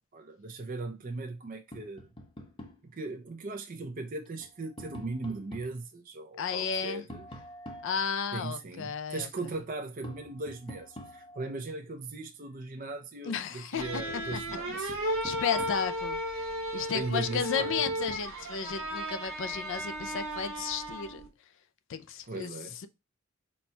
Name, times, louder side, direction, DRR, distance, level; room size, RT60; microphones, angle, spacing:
voice 1, 0.1-2.1 2.8-7.3 8.3-15.2 16.9-17.8 22.3-22.8, right 3 dB, 40° right, 0.6 m, -38 dB
Tap, 1.7-2.9 4.3-5.8 7.1-8.5 10.0-11.6 13.4-13.5 13.9-16.0 17.6-18.3, equal, 25° left, 0.8 m, -47 dB
voice 2, 6.4-7.0 7.8-9.3 13.2-14.0 14.8-21.2 21.9-22.5, left 7 dB, 65° left, 0.4 m, -33 dB
sound 1, 13.8-21.3, equal, 75° right, 1.2 m, -35 dB
4.2 x 2.2 x 4.3 m
head